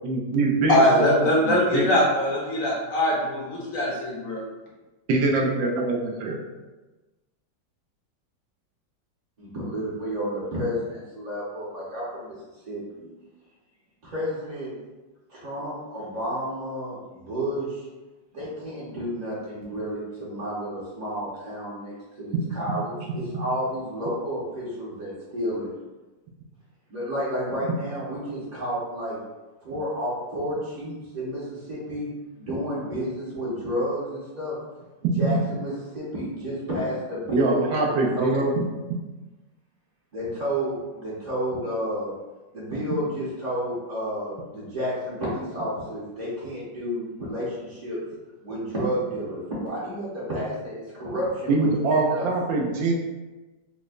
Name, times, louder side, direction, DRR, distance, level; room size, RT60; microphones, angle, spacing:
voice 1, 0.0-1.9 5.1-6.4 35.2-35.4 37.3-38.6 51.5-52.9, right 3 dB, 90° right, -1 dB, 1.4 m, -23 dB
voice 2, 0.7-4.4, left 1 dB, 60° left, -4 dB, 0.9 m, -22 dB
voice 3, 9.4-12.3 12.7-13.1 14.0-14.7 15.3-17.8 18.3-25.7 26.9-29.2 29.6-32.1 32.4-34.6 35.2-37.7 38.1-38.4 40.1-42.1 42.5-48.0 48.4-52.3, equal, 45° right, -9 dB, 0.5 m, -31 dB
4.9 x 2.1 x 2.4 m, 1.1 s
omnidirectional pair, 2.0 m